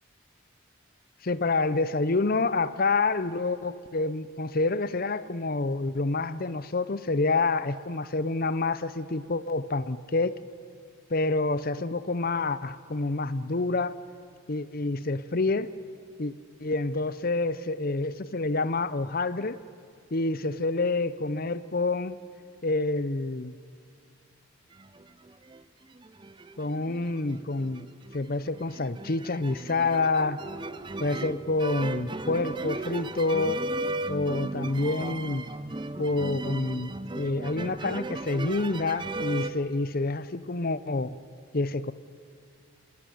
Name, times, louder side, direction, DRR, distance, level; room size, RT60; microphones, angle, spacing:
voice 1, 1.2-10.4 11.1-14.0 14.5-15.7 16.2-16.3 16.6-19.6 20.1-22.2 22.6-23.5 26.6-27.9 28.1-30.4 31.0-33.7 34.1-35.5 36.0-41.2 41.5-41.9, left 3 dB, 45° left, 15 dB, 0.7 m, -28 dB
sound 1, 24.8-25.6 26.0-39.5, right 2 dB, 20° right, 0.6 m, -36 dB
27.5 x 18.0 x 10.0 m, 2.3 s
head